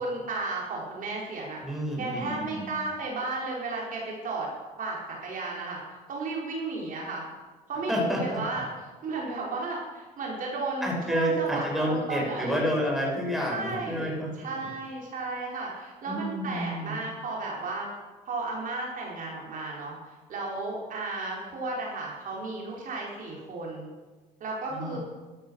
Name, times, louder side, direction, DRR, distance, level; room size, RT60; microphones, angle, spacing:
voice 1, 0.0-1.6 2.0-4.5 4.8-5.0 5.2-5.8 6.1-7.2 7.7-8.6 9.0-12.6 13.5-14.1 14.4-17.9 18.3-23.9 24.4-25.0, right 3 dB, 55° right, -3 dB, 4.6 m, -34 dB
voice 2, 1.6-2.7 7.9-8.4 10.8-14.3 16.1-17.0 24.7-25.0, equal, ahead, -2 dB, 5.9 m, -29 dB
13.0 x 12.5 x 6.4 m, 1.3 s
cardioid pair, 110°, 17 cm